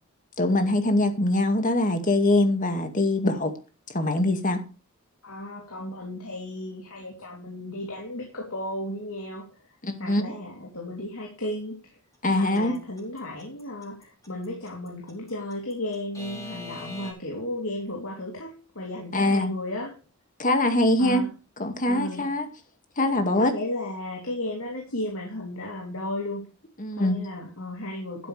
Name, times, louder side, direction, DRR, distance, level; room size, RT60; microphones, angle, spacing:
voice 1, 0.4-3.5 3.9-4.6 9.8-10.3 12.2-12.8 19.1-19.5 20.4-21.2 21.6-22.5 23.0-23.5 26.8-27.2, left 1 dB, 40° left, 2.2 m, -23 dB
voice 2, 5.2-9.4 10.0-11.8 12.3-20.0 21.0-21.3 21.9-22.3 23.4-26.5 27.0-28.3, left 1 dB, 75° left, 3.3 m, -34 dB
Alarm / Clock, 12.3-17.1, left 1 dB, 15° left, 4.4 m, -41 dB
12.5 x 9.9 x 3.4 m
head